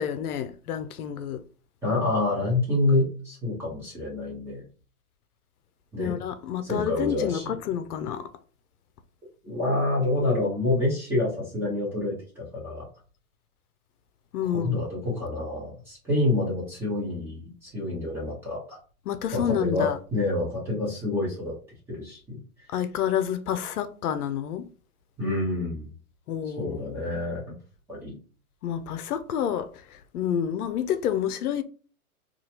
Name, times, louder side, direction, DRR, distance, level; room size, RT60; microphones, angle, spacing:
voice 1, 0.0-1.4 6.0-8.3 14.3-14.8 19.1-20.0 22.7-24.6 26.3-27.0 28.6-31.6, left 9 dB, 75° left, 0.6 m, -29 dB
voice 2, 1.8-4.6 5.9-6.2 6.6-7.5 9.4-12.9 14.5-18.8 19.3-21.5 21.9-22.4 25.2-25.9 26.4-27.5 27.9-28.2, left 2 dB, 5° right, 0.9 m, -27 dB
2.9 x 2.4 x 2.8 m
hypercardioid pair, 155°, 45 cm